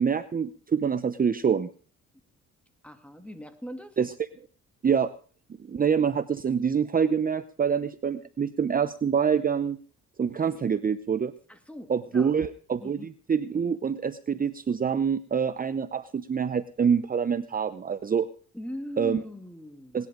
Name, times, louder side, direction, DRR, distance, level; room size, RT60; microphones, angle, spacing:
voice 1, 0.0-1.7 4.0-4.1 4.8-5.1 5.6-9.8 10.2-11.3 11.9-18.3 19.0-19.2 19.9-20.1, right 7 dB, 30° right, 13 dB, 0.7 m, -26 dB
voice 2, 2.8-4.0 11.5-12.3 12.8-13.1 18.5-20.0, equal, 5° left, 8 dB, 2.3 m, -40 dB
19.0 x 11.0 x 5.0 m, 0.43 s
cardioid pair, 90°, 30 cm